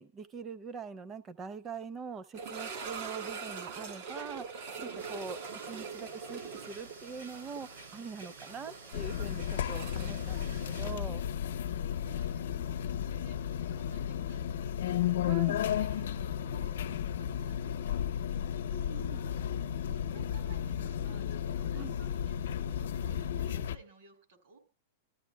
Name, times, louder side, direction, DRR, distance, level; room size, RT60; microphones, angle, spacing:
voice 1, 0.0-5.4 5.6-11.2 15.2-15.6 18.7-19.2 21.7-21.9, right 5 dB, 20° right, 14 dB, 0.6 m, -43 dB
sound 1, 2.3-11.3 11.5-11.6 12.2-12.3 14.9-15.0, right 5 dB, 55° right, 2.0 m, -43 dB
sound 2, 5.0-10.9, right 3 dB, 90° right, 6.6 m, -51 dB
sound 3, 8.9-23.8, left 9 dB, 85° left, 0.7 m, -33 dB
voice 2, 11.6-18.4 19.2-19.5 19.8-24.6, right 3 dB, 70° right, 5 dB, 4.4 m, -57 dB
28.5 x 13.0 x 2.3 m, 0.30 s
supercardioid pair, 160°, 0 cm